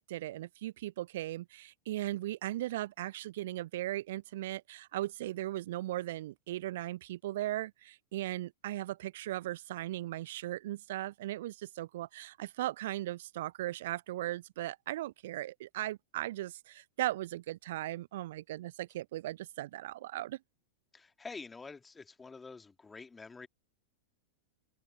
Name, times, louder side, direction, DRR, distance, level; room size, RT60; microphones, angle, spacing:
voice 1, 0.0-20.4, right 15 dB, 55° right, 0.7 m, -38 dB
voice 2, 20.9-23.5, left 4 dB, 15° left, 2.1 m, -47 dB
figure-of-eight pair, 90°, 0 cm